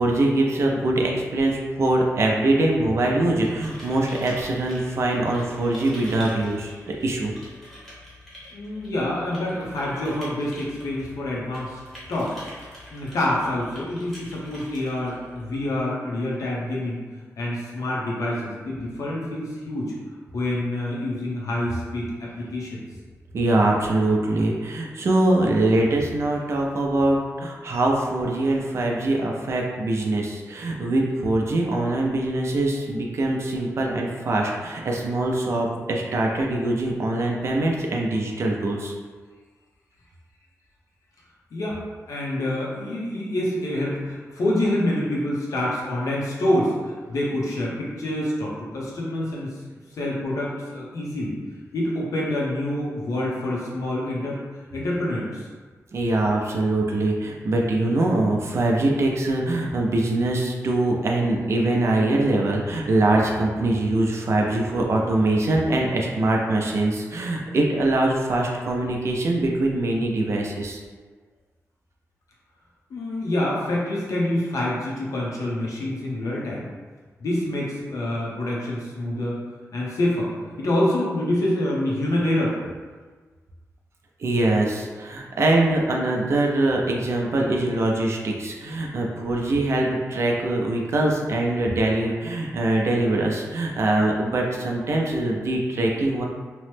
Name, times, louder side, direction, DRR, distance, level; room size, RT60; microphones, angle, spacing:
voice 1, 0.0-7.3 23.3-38.9 55.9-70.8 84.2-96.2, right 2 dB, 55° right, 0 dB, 0.4 m, -23 dB
sound 1, 3.1-15.8, left 1 dB, ahead, 0.8 m, -45 dB
voice 2, 8.5-11.8 12.1-12.3 12.9-17.0 17.4-19.9 20.3-22.8 41.5-41.8 42.1-49.5 50.0-51.4 51.7-54.4 54.7-55.5 72.9-76.7 77.2-79.4 79.7-82.6, left 1 dB, 80° left, -5 dB, 0.7 m, -26 dB
2.9 x 2.0 x 3.2 m, 1.4 s
wide cardioid pair, 175°, 6 cm